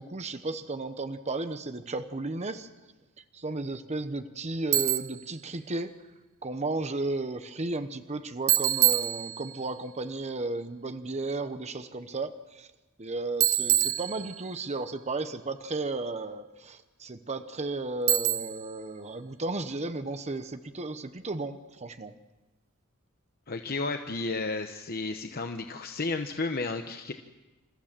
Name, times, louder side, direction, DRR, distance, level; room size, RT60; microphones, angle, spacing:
voice 1, 0.0-2.7 3.3-5.9 6.4-12.7 13.0-22.1, right 2 dB, 35° right, 9 dB, 0.9 m, -34 dB
Bicycle, 4.7-5.2 8.5-9.7 13.4-14.7 18.1-18.7, right 14 dB, 75° right, 1.0 m, -26 dB
voice 2, 23.5-27.1, left 3 dB, 45° left, 6 dB, 0.9 m, -32 dB
28.0 x 14.5 x 7.4 m, 1.2 s
head